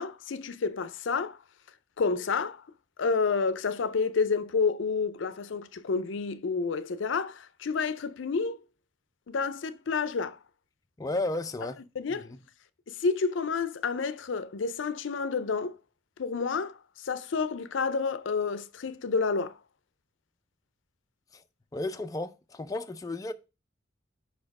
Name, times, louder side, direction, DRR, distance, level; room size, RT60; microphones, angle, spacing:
voice 1, 0.0-1.4 2.0-2.6 3.0-8.6 9.3-10.4 12.0-12.3 12.9-15.8 16.2-16.8 17.0-19.6, left 4 dB, 70° left, 0.5 m, -29 dB
voice 2, 11.0-11.8 12.1-12.4 21.3-21.4 21.7-23.3, left 2 dB, 20° left, 0.4 m, -33 dB
5.2 x 4.3 x 5.8 m
head